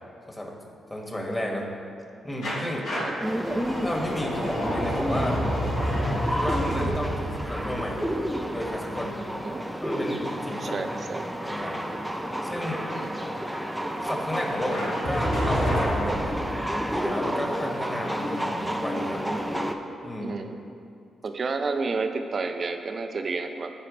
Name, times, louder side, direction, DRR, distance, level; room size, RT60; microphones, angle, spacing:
voice 1, 0.9-1.7 2.2-2.9 3.8-5.4 6.3-8.1 8.5-9.3 9.8-10.8 11.4-11.8 12.4-12.8 14.0-16.5 16.9-19.3 20.0-20.4, equal, 20° left, -1 dB, 2.2 m, -32 dB
sound 1, 2.4-9.2 14.7-16.9, equal, 70° left, 2.0 m, -29 dB
sound 2, 3.2-19.8, equal, 5° right, 0.7 m, -30 dB
voice 2, 10.6-11.3 12.9-13.1 20.2-20.6 21.2-23.7, right 4 dB, 50° right, 7 dB, 0.7 m, -30 dB
14.0 x 4.8 x 3.4 m, 2.5 s
hypercardioid pair, 45°, 0 cm